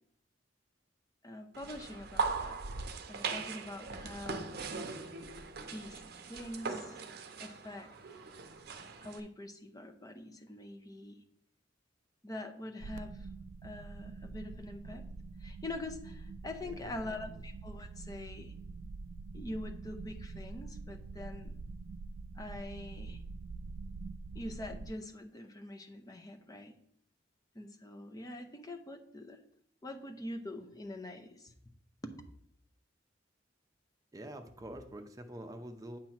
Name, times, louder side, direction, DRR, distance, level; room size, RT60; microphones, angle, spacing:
voice 1, 1.2-2.6 3.1-4.7 5.7-7.0 7.4-7.9 9.0-11.2 12.2-13.3 13.6-15.0 15.4-18.5 19.3-21.6 22.4-23.2 24.3-26.8 27.5-29.4 29.8-31.5 32.0-32.2, left 1 dB, 20° left, 7 dB, 0.7 m, -44 dB
sound 1, 1.6-9.2, right 4 dB, 55° right, 0.7 m, -40 dB
sound 2, 12.8-24.9, right 3 dB, 90° right, 0.4 m, -45 dB
voice 2, 16.6-17.1 34.1-36.0, right 1 dB, 20° right, 4 dB, 0.7 m, -46 dB
8.8 x 3.0 x 5.9 m, 0.71 s
head